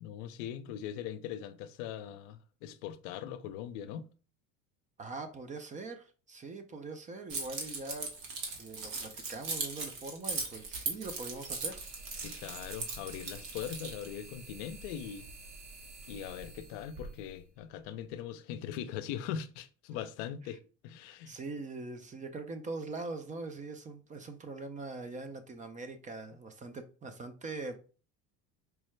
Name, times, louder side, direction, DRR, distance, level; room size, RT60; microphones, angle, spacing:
voice 1, 0.0-4.1 12.2-15.3 16.1-21.3, left 9 dB, 75° left, 0.5 m, -41 dB
voice 2, 5.0-8.1 8.6-11.8 20.5-20.6 21.1-27.8, right 3 dB, 20° right, 0.4 m, -42 dB
Keys jangling, 7.3-14.1, right 4 dB, 70° right, 1.2 m, -39 dB
sound 1, 10.2-18.1, right 2 dB, 45° right, 1.3 m, -50 dB
4.6 x 2.1 x 3.1 m
supercardioid pair, 105°, 36 cm